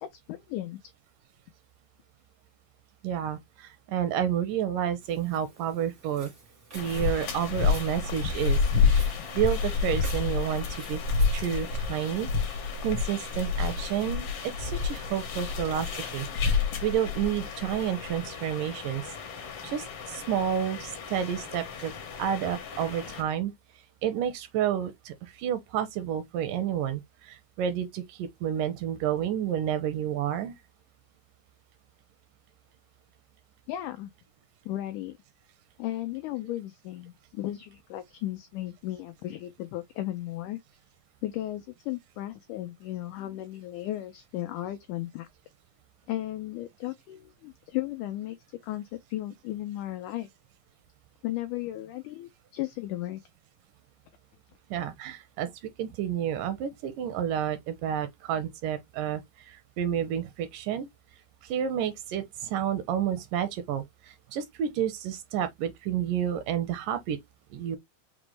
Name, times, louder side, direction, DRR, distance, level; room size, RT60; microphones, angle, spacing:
voice 1, 0.0-0.8 33.7-34.1 34.6-35.2 35.8-40.6 41.2-45.3 46.1-48.4 48.6-50.3 51.2-53.2, left 14 dB, 90° left, 1.7 m, -35 dB
voice 2, 3.0-6.3 6.7-11.0 11.3-12.3 12.8-16.3 16.8-19.1 19.6-21.9 22.2-23.5 24.0-30.6 54.7-60.9 61.4-67.2 67.5-67.8, right 9 dB, 80° right, 2.1 m, -30 dB
Walk footsteps, 5.0-13.3, right 3 dB, 60° right, 0.7 m, -51 dB
sound 1, 6.7-23.2, left 5 dB, 70° left, 1.4 m, -30 dB
6.0 x 2.1 x 3.1 m
omnidirectional pair, 4.1 m